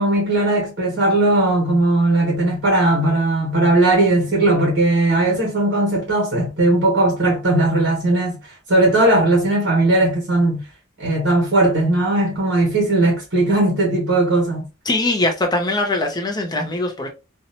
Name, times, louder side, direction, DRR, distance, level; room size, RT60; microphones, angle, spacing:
voice 1, 0.0-8.4 8.7-10.6 11.0-14.6, right 2 dB, 60° right, 1.2 m, -18 dB
voice 2, 14.9-17.1, left 2 dB, 20° left, 0.4 m, -21 dB
2.7 x 2.1 x 2.7 m
head